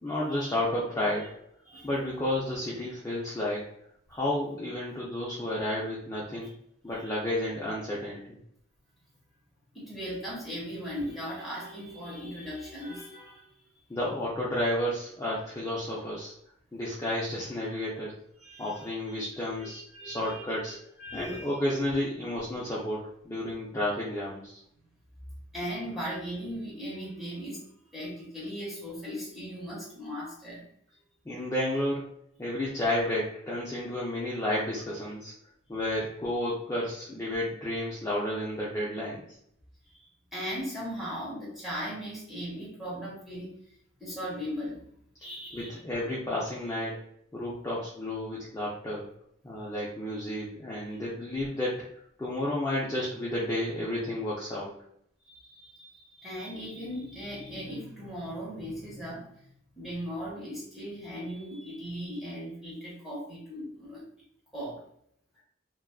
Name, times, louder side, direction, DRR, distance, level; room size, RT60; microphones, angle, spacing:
voice 1, 0.0-1.3 1.8-3.7 4.1-6.5 6.8-8.3 13.9-16.3 16.7-18.1 18.6-20.8 21.1-24.6 31.3-32.0 32.4-35.3 35.7-39.2 45.5-47.0 47.3-49.1 49.4-51.8 52.2-54.7, left 1 dB, 15° left, -7 dB, 0.3 m, -31 dB
voice 2, 9.7-13.5 18.4-18.9 19.6-21.5 25.5-27.6 27.9-30.6 39.9-43.5 44.0-44.9 45.2-45.8 50.9-51.0 55.2-59.3 59.8-64.0 64.5-64.8, equal, ahead, -7 dB, 0.8 m, -38 dB
2.4 x 2.2 x 2.3 m, 0.69 s
head